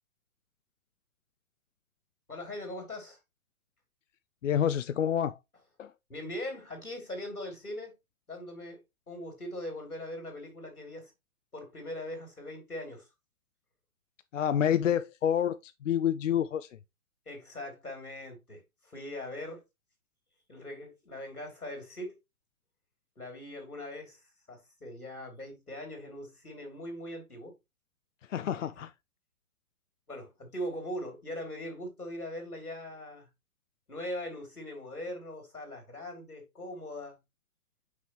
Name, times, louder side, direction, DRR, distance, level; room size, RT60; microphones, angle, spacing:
voice 1, 2.3-3.2 6.1-7.9 8.3-11.1 11.5-13.1 17.2-19.6 20.5-22.2 23.2-24.2 24.5-27.6 28.7-28.8 30.1-33.3 33.9-37.2, left 1 dB, 85° left, 3.2 m, -41 dB
voice 2, 4.4-5.4 5.8-5.9 14.3-16.7 28.3-28.9, left 9 dB, 60° left, 0.5 m, -28 dB
6.2 x 5.4 x 3.0 m
figure-of-eight pair, 125°, 43 cm